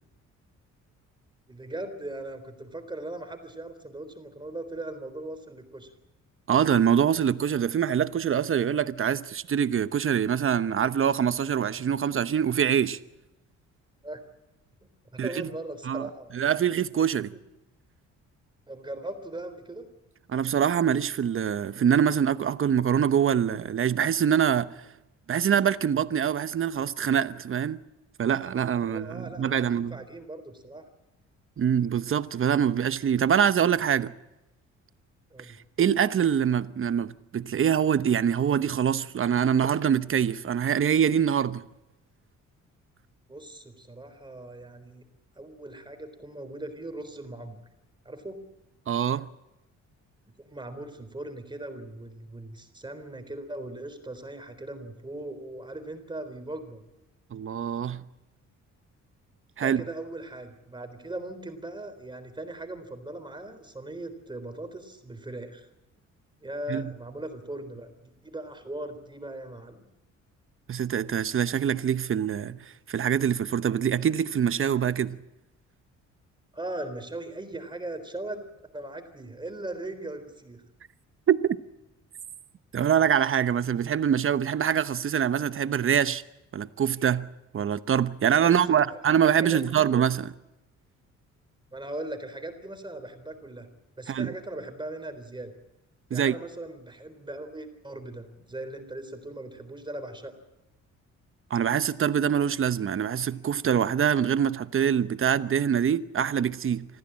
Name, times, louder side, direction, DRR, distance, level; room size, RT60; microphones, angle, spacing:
voice 1, 1.5-5.9 14.0-14.2 15.1-16.3 18.7-19.9 28.8-30.8 35.3-35.6 43.3-45.0 45.4-47.6 48.1-48.4 50.4-56.8 59.6-65.7 66.4-69.8 76.5-80.6 88.4-89.2 89.5-89.9 91.7-93.7 94.0-95.5 96.1-100.3, right 1 dB, 15° right, 3.8 m, -39 dB
voice 2, 6.5-13.0 15.2-15.5 15.8-16.1 16.3-17.3 20.3-24.7 25.3-27.8 28.2-30.0 31.6-34.1 35.8-41.6 48.9-49.2 57.3-58.0 59.6-59.8 66.7-66.9 70.7-72.6 72.9-75.2 81.3-81.6 82.7-86.2 86.5-87.3 87.5-90.3 94.1-94.3 96.1-96.3 101.5-106.9, right 8 dB, 45° right, 1.0 m, -24 dB
25.5 x 15.0 x 8.8 m
cardioid pair, 90°, 30 cm